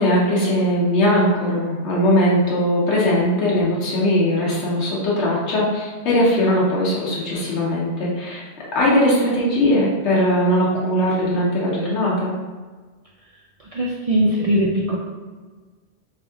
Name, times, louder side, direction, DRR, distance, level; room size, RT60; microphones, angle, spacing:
voice 1, 0.0-8.4 8.7-12.3, equal, 85° left, -5 dB, 1.1 m, -19 dB
voice 2, 13.6-15.0, equal, 65° right, -3 dB, 0.3 m, -20 dB
3.3 x 2.9 x 3.5 m, 1.4 s
omnidirectional pair, 1.1 m